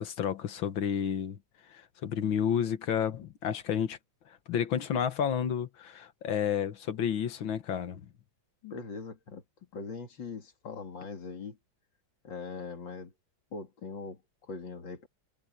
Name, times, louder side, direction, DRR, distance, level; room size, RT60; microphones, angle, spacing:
voice 1, 0.0-1.4 1.7-4.0 4.5-8.0, left 8 dB, 85° left, 2.1 m, -31 dB
voice 2, 8.6-9.4 9.7-11.6 12.2-13.1 13.5-15.1, left 4 dB, 70° left, 3.4 m, -41 dB
omnidirectional pair, 2.1 m